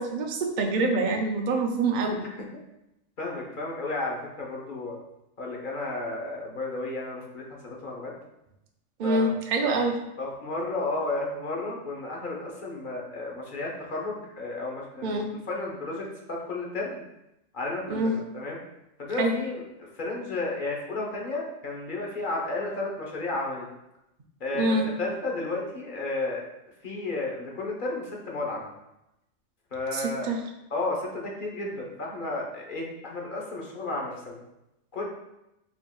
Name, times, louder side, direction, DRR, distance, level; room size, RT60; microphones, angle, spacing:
voice 1, 0.0-2.2 9.0-9.9 15.0-15.3 17.9-18.1 19.2-19.3 24.5-24.9 29.9-30.4, right 2 dB, 55° right, 3 dB, 0.5 m, -25 dB
voice 2, 3.2-5.0 5.4-8.1 9.0-9.3 9.6-9.7 10.2-17.0 17.5-18.6 19.0-23.7 24.4-26.4 26.8-28.7 29.7-30.3 30.7-34.4 34.9-35.0, left 2 dB, 45° left, -2 dB, 1.0 m, -32 dB
5.1 x 3.6 x 2.3 m, 0.88 s
omnidirectional pair, 1.4 m